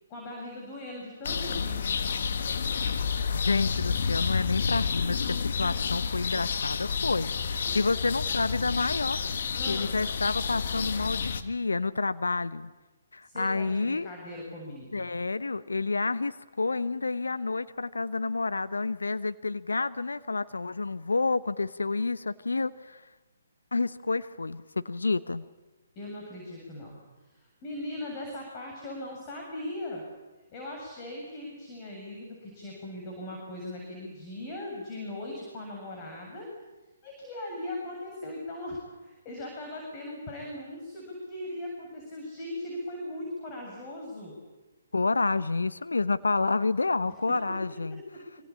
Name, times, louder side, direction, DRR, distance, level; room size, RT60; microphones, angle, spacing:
voice 1, 0.1-1.8 9.5-10.0 13.2-15.1 26.0-27.0 27.3-30.0 30.5-36.5 37.0-44.4 47.0-47.1, left 1 dB, 30° left, 0 dB, 7.8 m, -39 dB
sound 1, 1.2-11.4, left 6 dB, 55° left, 1.7 m, -30 dB
voice 2, 3.3-9.2 9.7-12.7 13.1-14.1 14.9-23.0 23.7-25.5 44.9-48.0, left 3 dB, 75° left, 13 dB, 1.0 m, -29 dB
26.5 x 26.0 x 8.7 m, 1.2 s
figure-of-eight pair, 135°, 0 cm